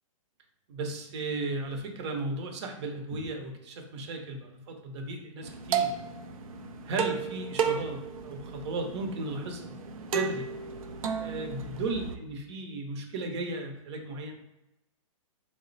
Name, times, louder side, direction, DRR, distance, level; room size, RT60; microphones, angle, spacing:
voice 1, 0.7-5.9 6.8-9.8 10.1-10.5 11.2-14.4, right 2 dB, 55° right, 3 dB, 0.8 m, -35 dB
sound 1, 5.4-12.2, right 7 dB, 75° right, 0.5 m, -33 dB
3.8 x 2.1 x 3.9 m, 0.90 s
hypercardioid pair, 140°, 18 cm